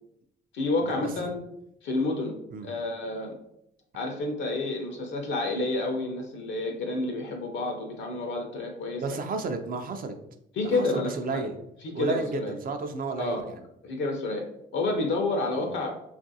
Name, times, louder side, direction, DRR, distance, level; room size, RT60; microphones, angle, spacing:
voice 1, 0.5-1.4 1.8-2.4 2.6-3.3 3.9-9.2 10.6-11.4 11.8-12.6 13.2-13.5 13.8-14.4 14.7-16.0, left 2 dB, 70° left, 3 dB, 0.6 m, -29 dB
voice 2, 9.0-10.1 10.6-11.6 11.9-13.6 15.6-15.7, right 4 dB, 45° right, 6 dB, 0.4 m, -32 dB
3.0 x 2.4 x 2.6 m, 0.78 s
cardioid pair, 90°, 20 cm